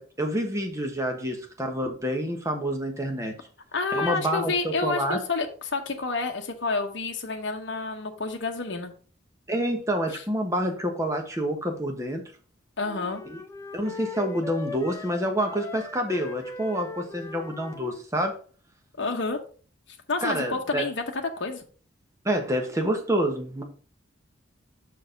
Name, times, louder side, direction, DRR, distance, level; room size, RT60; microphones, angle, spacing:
voice 1, 0.0-3.3 3.9-5.2 9.5-12.2 13.3-13.4 13.7-18.4 20.2-20.8 22.2-23.6, equal, 15° right, 3 dB, 1.2 m, -28 dB
voice 2, 3.7-8.9 10.1-10.2 12.8-13.2 19.0-19.4 20.1-21.6, left 3 dB, 60° left, 3 dB, 0.9 m, -29 dB
sound 1, 12.8-18.0, left 3 dB, 15° left, 0.5 m, -40 dB
6.2 x 4.7 x 5.0 m, 0.40 s
head